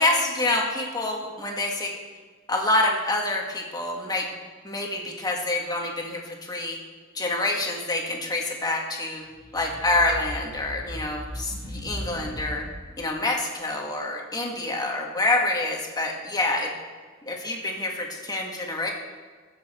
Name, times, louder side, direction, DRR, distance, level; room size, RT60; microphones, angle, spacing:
voice 1, 0.0-1.9 2.5-4.3 4.6-6.8 7.1-9.2 9.5-12.6 13.0-16.7 17.2-18.9, left 2 dB, 20° left, 0 dB, 1.7 m, -27 dB
sound 1, 9.3-12.9, equal, 20° right, 4.3 m, -37 dB
21.0 x 7.5 x 4.4 m, 1.5 s
head